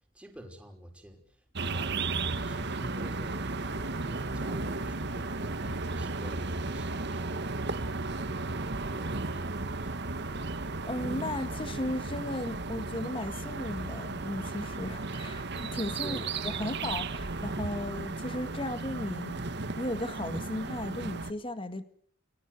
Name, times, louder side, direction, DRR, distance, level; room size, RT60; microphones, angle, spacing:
voice 1, 0.1-7.8 8.1-8.4 8.8-10.0 16.0-16.7, equal, 5° right, 5.7 m, -48 dB
sound 1, 1.6-21.3, right 3 dB, 60° right, 1.6 m, -34 dB
voice 2, 10.9-19.4 19.8-21.8, left 1 dB, 25° left, 1.9 m, -36 dB
30.0 x 20.0 x 8.3 m
head